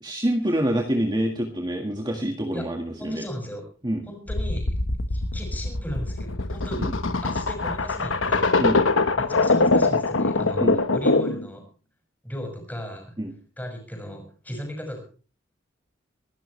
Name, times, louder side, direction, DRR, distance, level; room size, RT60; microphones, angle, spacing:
voice 1, 0.0-3.3 3.8-4.0 6.8-6.9 8.6-8.8 10.6-10.8 13.2-13.3, right 1 dB, 20° right, 2 dB, 1.7 m, -26 dB
voice 2, 3.0-3.6 4.1-4.6 5.1-6.8 7.2-8.6 9.3-11.6 12.2-13.1 13.6-15.0, equal, 10° left, 3 dB, 6.1 m, -36 dB
sound 1, 4.3-11.5, left 3 dB, 90° left, 1.3 m, -23 dB
25.5 x 12.5 x 3.3 m, 0.37 s
head